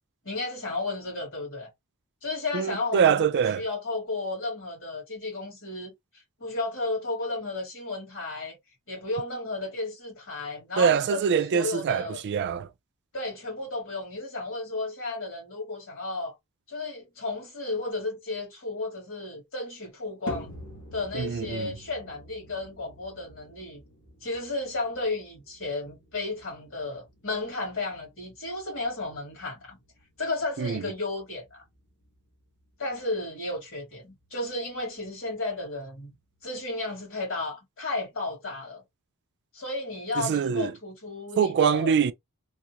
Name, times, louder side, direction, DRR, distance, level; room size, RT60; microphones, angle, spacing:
voice 1, 0.2-1.7 2.2-5.9 6.4-8.6 8.9-12.2 13.1-16.4 16.7-20.5 20.9-23.8 24.2-29.8 30.2-31.6 32.8-36.1 36.4-38.8 39.5-41.9, left 2 dB, 60° left, 2.2 m, -33 dB
voice 2, 2.5-3.6 10.8-12.7 21.1-21.8 30.6-30.9 40.2-40.7 41.4-42.1, right 7 dB, 50° right, 0.3 m, -24 dB
sound 1, 20.3-36.7, equal, 80° left, 1.4 m, -48 dB
3.5 x 2.4 x 2.9 m
head